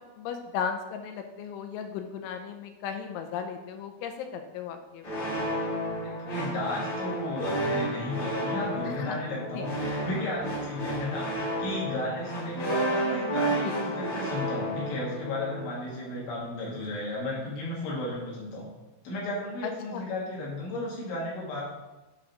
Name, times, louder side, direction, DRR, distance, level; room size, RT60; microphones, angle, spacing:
voice 1, 0.2-5.1 8.9-9.2 9.5-9.9 13.6-13.7 19.6-20.0, left 7 dB, 85° left, 6 dB, 2.9 m, -36 dB
sound 1, 5.0-15.9, right 1 dB, 40° left, 1.9 m, -31 dB
voice 2, 6.3-18.7 19.0-21.6, left 1 dB, 65° left, -6 dB, 4.3 m, -34 dB
10.0 x 3.7 x 6.0 m, 1.1 s
omnidirectional pair, 5.8 m